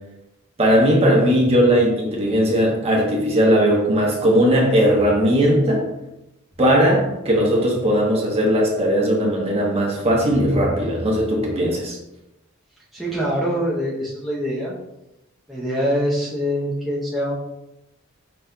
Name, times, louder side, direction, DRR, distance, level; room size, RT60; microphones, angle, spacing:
voice 1, 0.6-5.8 6.6-12.0, equal, 30° right, -2 dB, 1.0 m, -18 dB
voice 2, 12.9-14.7 15.5-17.3, equal, ahead, -7 dB, 0.7 m, -24 dB
5.1 x 4.1 x 2.3 m, 0.92 s
head